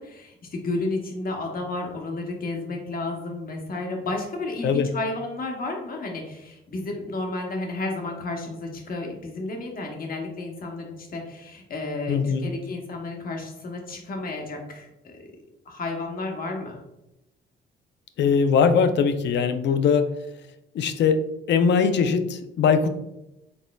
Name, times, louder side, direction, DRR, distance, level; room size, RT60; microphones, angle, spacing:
voice 1, 0.0-15.4 15.7-16.8, left 2 dB, 45° left, 1 dB, 0.9 m, -32 dB
voice 2, 12.1-12.5 18.2-20.1 20.7-21.2 21.5-22.9, left 6 dB, 65° left, 10 dB, 0.5 m, -21 dB
4.1 x 3.6 x 2.2 m, 0.89 s
cardioid pair, 90°, 20 cm